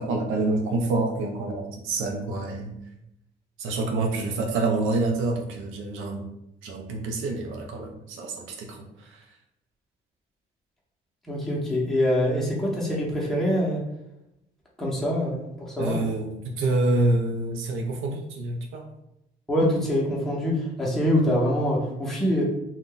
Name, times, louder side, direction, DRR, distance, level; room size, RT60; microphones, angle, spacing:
voice 1, 0.0-2.8 3.6-6.3 6.6-9.2 15.8-18.8, right 2 dB, 85° right, 2 dB, 0.5 m, -27 dB
voice 2, 11.3-13.8 14.8-16.0 19.5-22.4, equal, ahead, -5 dB, 0.9 m, -24 dB
2.5 x 2.2 x 3.7 m, 0.85 s
cardioid pair, 90°, 20 cm